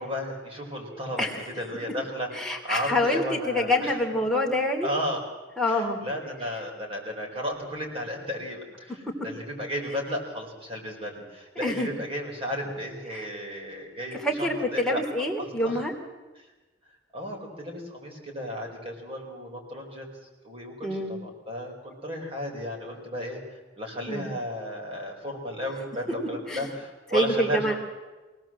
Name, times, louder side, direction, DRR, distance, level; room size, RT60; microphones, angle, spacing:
voice 1, 0.0-1.3 1.6-4.0 4.8-5.2 5.7-8.9 9.2-15.0 15.4-15.8 17.1-20.1 20.4-23.4 23.8-27.8, equal, 30° right, 0 dB, 5.1 m, -34 dB
voice 2, 2.3-4.9 5.6-6.0 11.6-11.9 13.1-13.3 14.2-15.9 20.8-21.1 24.1-24.3 26.5-26.7 27.1-27.7, left 1 dB, 5° left, 0 dB, 3.1 m, -26 dB
24.5 x 18.0 x 7.7 m, 1.2 s
head